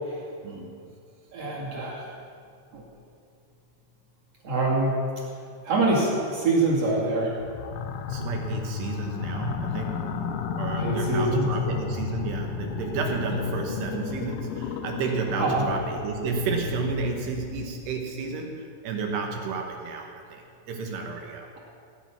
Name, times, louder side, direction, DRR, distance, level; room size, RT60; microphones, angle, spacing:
voice 1, 0.4-0.8 8.1-10.1 10.6-21.5, right 3 dB, 70° right, 2 dB, 2.9 m, -31 dB
voice 2, 1.3-2.0 2.7-2.8 4.4-4.9 5.6-7.3 10.8-11.5 15.4-15.7, right 2 dB, 40° right, -4 dB, 2.5 m, -24 dB
sound 1, 7.4-17.9, left 6 dB, 80° left, 3.2 m, -33 dB
18.0 x 9.0 x 5.8 m, 2.3 s
omnidirectional pair, 5.7 m